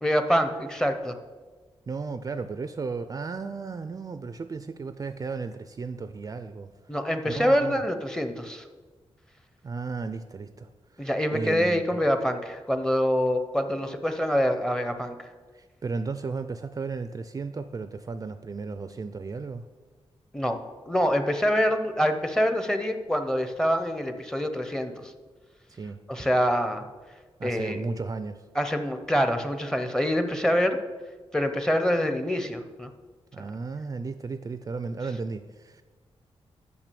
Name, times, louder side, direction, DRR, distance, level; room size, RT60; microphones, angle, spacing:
voice 1, 0.0-1.1 6.9-8.6 11.0-15.2 20.3-20.6 20.9-25.1 26.1-26.9 27.4-27.8 28.6-30.8 31.3-32.9 33.4-33.5, equal, 5° left, 8 dB, 0.7 m, -25 dB
voice 2, 1.9-6.7 7.3-7.8 9.6-12.0 15.5-19.7 25.7-26.0 27.4-28.4 33.3-35.8, right 4 dB, 35° right, 10 dB, 0.4 m, -34 dB
6.2 x 6.0 x 6.9 m, 1.4 s
wide cardioid pair, 100°, 11 cm